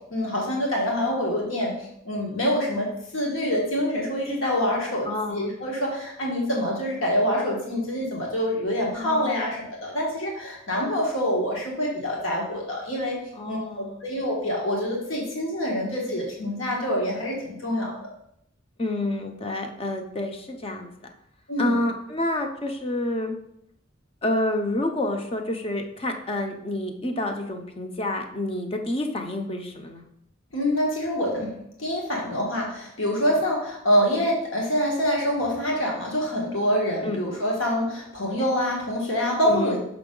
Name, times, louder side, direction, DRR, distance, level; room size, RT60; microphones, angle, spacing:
voice 1, 0.1-1.7 2.0-2.9 3.1-13.2 13.5-18.0 21.5-21.8 30.5-39.8, equal, 75° left, -1 dB, 1.5 m, -26 dB
voice 2, 5.1-5.5 9.0-9.6 13.3-14.0 18.8-20.9 21.6-23.3 24.2-30.0 37.0-37.2 39.4-39.8, left 1 dB, 30° left, 5 dB, 0.7 m, -28 dB
6.0 x 5.3 x 3.8 m, 0.75 s
head